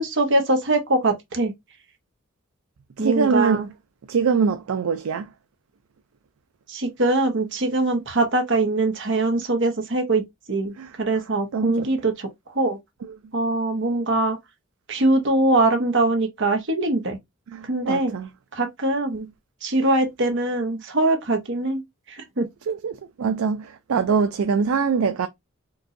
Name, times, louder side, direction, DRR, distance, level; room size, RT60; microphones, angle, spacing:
voice 1, 0.0-1.5 3.0-3.7 6.7-10.2 10.5-12.3 12.5-12.8 13.3-14.4 14.9-17.2 17.7-18.1 18.5-19.3 19.6-21.8 22.1-22.5, right 2 dB, 60° right, 1.1 m, -22 dB
voice 2, 3.0-3.6 4.1-5.3 10.8-10.9 11.5-11.9 17.5-18.3 22.7-25.3, right 5 dB, 85° right, 0.4 m, -23 dB
4.6 x 2.6 x 2.5 m
head